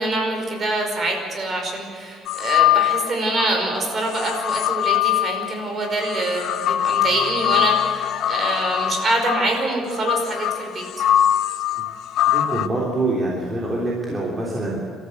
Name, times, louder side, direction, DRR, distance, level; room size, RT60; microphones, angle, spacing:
voice 1, 0.0-10.9, right 2 dB, 35° right, 2 dB, 5.1 m, -25 dB
sound 1, 2.3-3.5 4.1-12.7, left 12 dB, 65° left, 0.8 m, -22 dB
voice 2, 12.3-14.9, right 2 dB, 20° right, -4 dB, 3.2 m, -25 dB
27.5 x 13.5 x 8.0 m, 2.3 s
cardioid pair, 155°, 0 cm